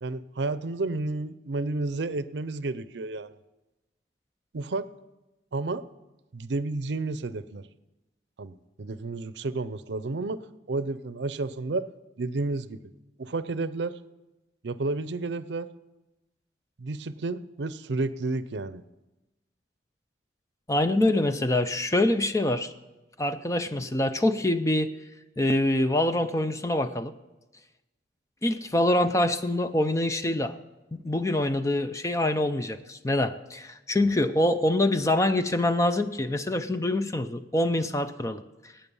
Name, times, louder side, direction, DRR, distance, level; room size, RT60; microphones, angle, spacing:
voice 1, 0.0-3.3 4.5-4.9 5.5-5.8 6.3-7.7 8.4-10.4 10.7-11.9 12.2-12.8 13.2-14.0 14.6-15.7 16.8-18.8, right 3 dB, 75° right, 15 dB, 0.6 m, -31 dB
voice 2, 20.7-22.7 23.2-24.9 25.4-27.1 28.4-30.6 31.0-38.4, left 1 dB, 15° left, 10 dB, 0.5 m, -25 dB
18.0 x 9.0 x 5.4 m, 1.1 s
head